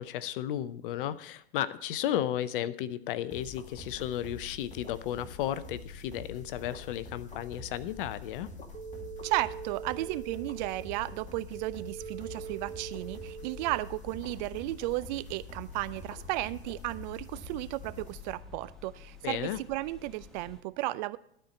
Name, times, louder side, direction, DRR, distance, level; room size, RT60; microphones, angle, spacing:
voice 1, 0.0-8.5 19.2-19.6, left 11 dB, 55° left, 16 dB, 0.7 m, -34 dB
sound 1, 3.3-18.8, left 3 dB, 20° left, 2.1 m, -46 dB
sound 2, 8.7-14.3, right 8 dB, 80° right, 2.9 m, -43 dB
voice 2, 9.2-21.2, right 18 dB, 45° right, 16 dB, 0.5 m, -34 dB
sound 3, 12.9-20.6, left 7 dB, ahead, 1.2 m, -53 dB
12.5 x 4.5 x 8.2 m, 0.69 s
hypercardioid pair, 95°, 32 cm